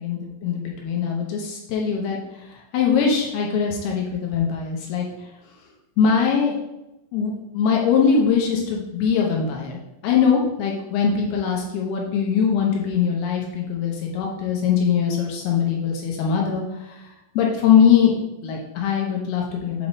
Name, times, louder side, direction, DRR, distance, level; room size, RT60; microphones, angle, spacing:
voice 1, 0.0-2.2 2.7-5.1 6.0-6.5 7.1-16.6 17.4-18.1 18.4-19.9, left 7 dB, 75° left, -1 dB, 2.4 m, -21 dB
8.1 x 3.5 x 4.0 m, 0.96 s
omnidirectional pair, 5.4 m